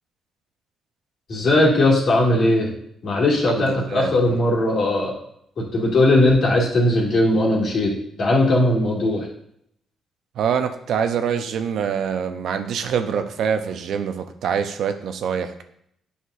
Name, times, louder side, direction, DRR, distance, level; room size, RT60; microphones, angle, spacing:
voice 1, 1.3-2.7 3.0-5.1 5.6-7.9 8.2-9.3, left 1 dB, 55° left, -2 dB, 2.2 m, -18 dB
voice 2, 3.6-4.3 10.4-15.6, right 7 dB, 70° right, 8 dB, 0.6 m, -25 dB
8.3 x 5.8 x 2.5 m, 0.71 s
cardioid pair, 90°, 0 cm